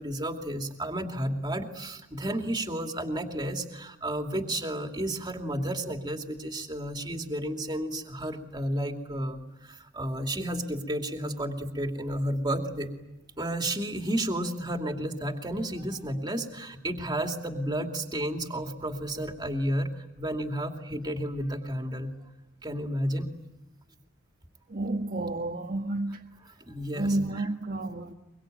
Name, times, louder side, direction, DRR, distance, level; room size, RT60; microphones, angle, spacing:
voice 1, 0.0-12.9 13.4-22.1 22.6-23.4 26.7-27.5, right 1 dB, 20° right, 2.6 m, -32 dB
voice 2, 24.7-26.2 26.9-28.1, right 2 dB, 45° right, 1.3 m, -30 dB
24.0 x 23.5 x 9.1 m
head